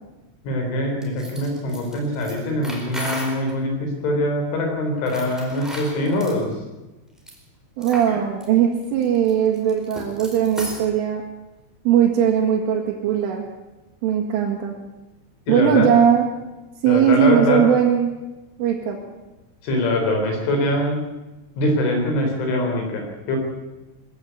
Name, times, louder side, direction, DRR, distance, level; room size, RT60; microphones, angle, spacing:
voice 1, 0.4-6.6 8.1-8.2 15.5-15.9 16.9-17.6 19.6-21.0 21.6-23.4, left 1 dB, 75° left, 3 dB, 6.5 m, -23 dB
sound 1, 1.0-3.6 5.0-6.4 7.2-7.4 7.8-8.1 8.4-8.5 8.8-10.9, equal, ahead, 3.6 m, -35 dB
voice 2, 7.8-11.2 11.9-13.4 14.0-14.7 15.5-16.3 16.8-18.1 18.6-19.0, right 9 dB, 85° right, -2 dB, 4.4 m, -19 dB
21.0 x 15.0 x 8.3 m, 1.1 s
omnidirectional pair, 5.5 m